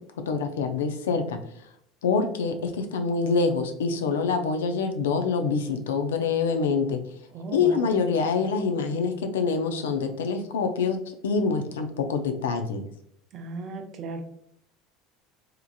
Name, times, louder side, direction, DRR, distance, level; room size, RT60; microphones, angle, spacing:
voice 1, 0.3-1.4 2.0-7.0 7.5-11.0 11.2-12.8, left 5 dB, 85° left, 6 dB, 0.4 m, -25 dB
voice 2, 7.3-7.9 13.3-14.2, right 3 dB, 50° right, 5 dB, 0.5 m, -36 dB
2.9 x 2.4 x 2.3 m, 0.69 s
hypercardioid pair, 80°, 0 cm